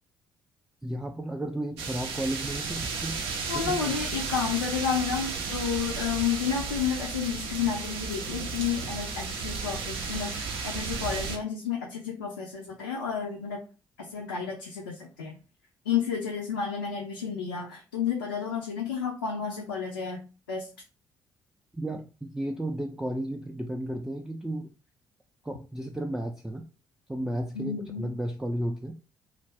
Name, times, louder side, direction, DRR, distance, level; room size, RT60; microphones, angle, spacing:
voice 1, 0.8-3.2 3.5-4.0 21.7-24.7 25.4-26.6 27.1-28.9, right 1 dB, 5° right, 2 dB, 0.3 m, -33 dB
sound 1, 1.8-11.4, right 5 dB, 65° right, 0.5 m, -33 dB
voice 2, 3.5-13.6 14.0-15.4 15.9-20.2 20.5-20.7 27.5-28.1, left 7 dB, 85° left, -2 dB, 0.4 m, -31 dB
2.2 x 2.0 x 3.3 m, 0.34 s
figure-of-eight pair, 45°, 10 cm